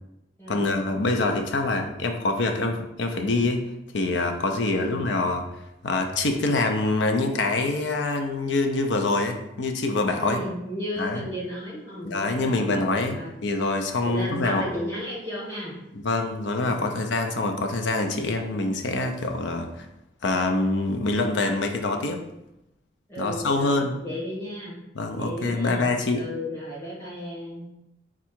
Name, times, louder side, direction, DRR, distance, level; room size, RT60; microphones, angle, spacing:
voice 1, 0.5-3.6 3.9-5.4 5.8-10.4 11.0-11.2 12.0-14.7 16.0-19.9 20.2-22.2 23.2-23.9 25.0-26.2, left 2 dB, 90° left, 5 dB, 0.6 m, -25 dB
voice 2, 4.5-5.0 10.1-12.7 13.1-13.3 14.0-15.8 16.7-17.0 23.1-24.8 25.1-27.7, equal, 15° left, -8 dB, 1.5 m, -34 dB
4.6 x 2.4 x 4.3 m, 0.89 s
head